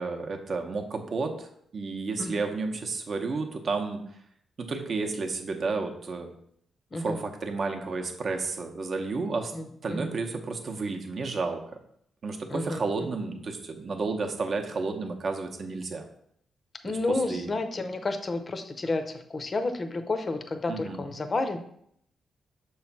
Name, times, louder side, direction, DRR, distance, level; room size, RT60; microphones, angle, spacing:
voice 1, 0.0-1.5 1.7-4.0 4.6-6.3 6.9-9.5 9.8-11.8 12.2-16.1 16.8-16.9 17.3-17.5 20.7-21.0, right 4 dB, 40° right, 3 dB, 0.8 m, -31 dB
voice 2, 6.9-7.2 9.5-10.1 12.5-13.1 16.8-21.6, left 2 dB, 25° left, 7 dB, 0.6 m, -31 dB
6.9 x 3.1 x 5.8 m, 0.68 s
wide cardioid pair, 160°, 0 cm